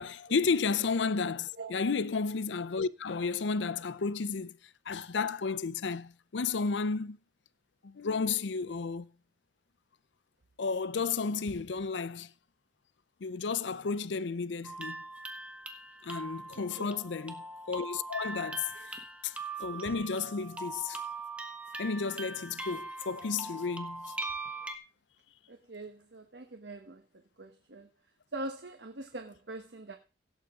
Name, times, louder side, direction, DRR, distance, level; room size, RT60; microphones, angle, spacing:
voice 1, 0.0-4.6 4.9-7.2 7.8-9.1 10.6-12.3 13.2-15.0 16.0-19.0 19.2-21.0 21.8-24.1, left 5 dB, 90° left, 0.6 m, -32 dB
sound 1, 14.6-24.8, right 3 dB, 5° right, 1.1 m, -41 dB
voice 2, 16.5-16.9 25.5-27.9 28.3-30.0, right 2 dB, 75° right, 1.2 m, -43 dB
16.5 x 8.2 x 3.6 m
head